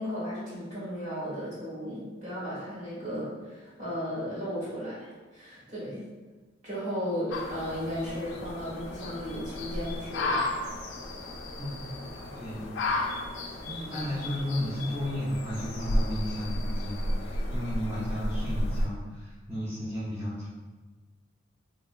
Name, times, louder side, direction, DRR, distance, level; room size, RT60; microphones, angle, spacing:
voice 1, 0.0-6.0 6.6-10.5, equal, 40° right, -8 dB, 1.3 m, -35 dB
sound 1, 7.3-18.9, left 1 dB, 80° left, 0.4 m, -33 dB
voice 2, 11.6-12.0 12.3-13.0 13.6-20.5, equal, 10° right, -11 dB, 0.5 m, -34 dB
3.0 x 3.0 x 2.3 m, 1.3 s
head